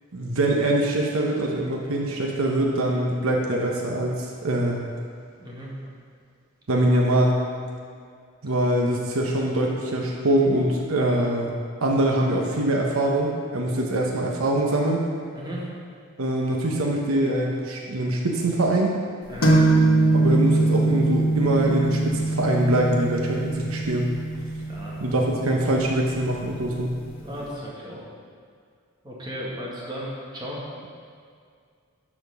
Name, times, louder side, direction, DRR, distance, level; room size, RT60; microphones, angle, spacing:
voice 1, 0.1-4.8 6.7-7.4 8.4-11.5 11.8-15.0 16.2-19.0 20.1-24.1 25.0-27.0, right 1 dB, 75° right, -1 dB, 1.0 m, -23 dB
voice 2, 5.4-5.7 15.3-15.7 19.3-19.6 24.7-24.9 27.2-28.0 29.0-30.6, equal, 20° right, -6 dB, 1.7 m, -35 dB
sound 1, 19.4-26.9, right 2 dB, 65° left, 1.3 m, -23 dB
12.0 x 4.4 x 5.6 m, 2.2 s
head